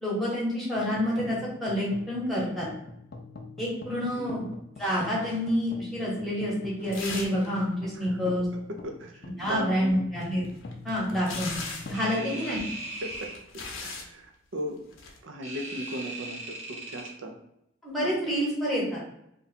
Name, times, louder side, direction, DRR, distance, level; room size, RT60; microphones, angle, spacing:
voice 1, 0.0-2.7 3.6-4.4 4.8-8.5 9.4-10.4 10.8-11.5 11.9-12.6 17.8-19.0, equal, ahead, -6 dB, 1.1 m, -28 dB
sound 1, 0.8-13.2, left 2 dB, 50° left, 0.4 m, -45 dB
sound 2, 4.8-5.4 6.8-7.6 11.9-13.4 15.4-17.1, right 2 dB, 35° right, 0.9 m, -40 dB
sound 3, 6.9-7.5 7.7-7.8 10.2-12.0 12.9-14.1 14.9-15.2, left 4 dB, 85° left, 0.7 m, -38 dB
voice 2, 7.9-8.4 8.8-10.0 12.1-12.6 13.0-13.3 13.8-14.2 14.5-14.8 15.2-17.3, equal, 75° right, 3 dB, 0.6 m, -37 dB
2.6 x 2.3 x 4.1 m, 0.77 s
head